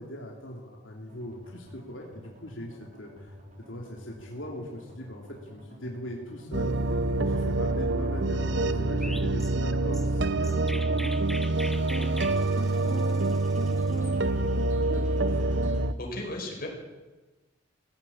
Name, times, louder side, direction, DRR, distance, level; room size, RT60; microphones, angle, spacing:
voice 1, 0.0-3.3 3.7-11.1 11.5-12.2 12.5-15.7, equal, 80° left, -1 dB, 3.1 m, -41 dB
sound 1, 1.1-15.9, left 1 dB, 40° right, 3.7 m, -50 dB
sound 2, 6.5-15.9, right 2 dB, 65° right, 0.9 m, -26 dB
Chirp tweet, 9.0-14.1, equal, ahead, 0.9 m, -42 dB
voice 2, 16.0-16.7, left 1 dB, 50° left, 1 dB, 5.3 m, -35 dB
18.5 x 16.0 x 8.8 m, 1.2 s
head